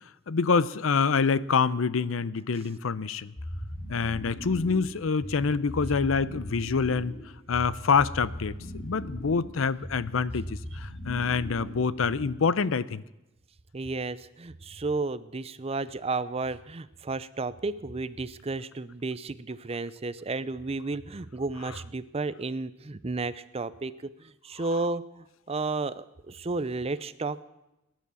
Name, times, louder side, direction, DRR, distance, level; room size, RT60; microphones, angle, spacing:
voice 1, 0.3-3.3 3.9-7.2 7.5-13.0, left 5 dB, 85° left, 17 dB, 0.6 m, -26 dB
sound 1, 3.4-12.6, equal, 45° left, 2.5 m, -39 dB
voice 2, 13.7-27.4, right 3 dB, 30° right, 16 dB, 0.6 m, -33 dB
19.5 x 10.5 x 7.0 m, 0.98 s
head